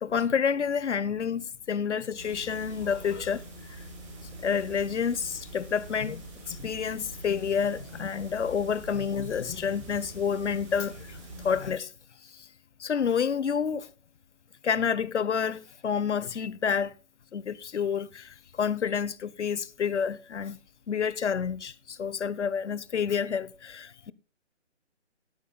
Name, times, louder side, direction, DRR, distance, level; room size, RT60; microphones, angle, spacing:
voice 1, 0.0-3.4 4.4-11.9 12.8-13.9 14.6-16.9 17.3-20.6 20.9-24.1, left 7 dB, 70° left, 0.9 m, -29 dB
sound 1, 2.2-11.7, right 1 dB, 25° right, 4.8 m, -44 dB
20.5 x 13.0 x 2.3 m
hypercardioid pair, 170°, 36 cm